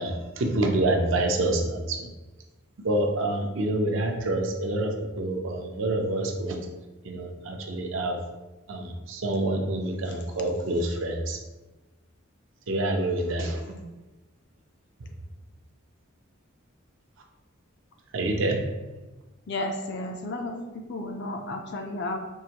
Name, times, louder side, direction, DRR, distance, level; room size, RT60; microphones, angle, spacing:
voice 1, 0.0-2.1 2.8-6.7 7.0-8.2 8.7-11.4 12.7-13.8 18.1-18.6, right 1 dB, 60° right, 2 dB, 0.5 m, -27 dB
voice 2, 19.5-22.2, left 2 dB, 55° left, 4 dB, 0.5 m, -33 dB
4.7 x 2.5 x 2.9 m, 1.1 s
head